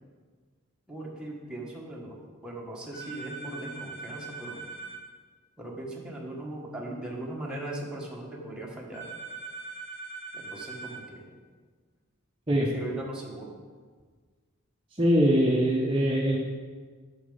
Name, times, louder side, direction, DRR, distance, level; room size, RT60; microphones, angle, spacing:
voice 1, 0.9-4.7 5.6-9.1 10.3-11.3 12.6-13.5, right 1 dB, 5° right, -3 dB, 1.5 m, -39 dB
sound 1, 2.9-5.0 8.9-11.0, right 4 dB, 55° left, 2.3 m, -41 dB
voice 2, 15.0-16.4, equal, 25° right, -2 dB, 0.9 m, -22 dB
8.4 x 6.9 x 5.5 m, 1.6 s
head